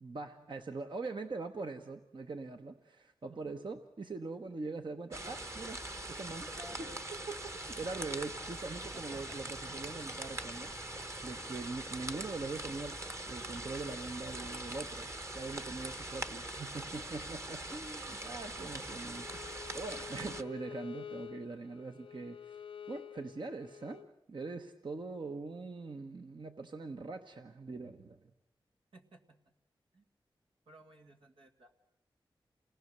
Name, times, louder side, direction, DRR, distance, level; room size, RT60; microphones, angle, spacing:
voice 1, 0.0-6.5 7.3-10.7 11.2-19.4 19.7-22.6 22.9-24.0 24.3-28.3, right 3 dB, 55° right, 5 dB, 1.1 m, -42 dB
voice 2, 3.3-3.7 6.6-7.0 8.8-9.4 20.1-20.2 28.9-29.4 29.9-30.1 30.7-31.8, right 1 dB, 85° right, 2 dB, 2.3 m, -56 dB
sound 1, 5.1-20.4, right 1 dB, 30° right, 1.2 m, -42 dB
Bowed string instrument, 19.1-24.1, left 8 dB, 75° left, 0.8 m, -48 dB
29.0 x 19.5 x 6.8 m, 0.88 s
cardioid pair, 60°, 9 cm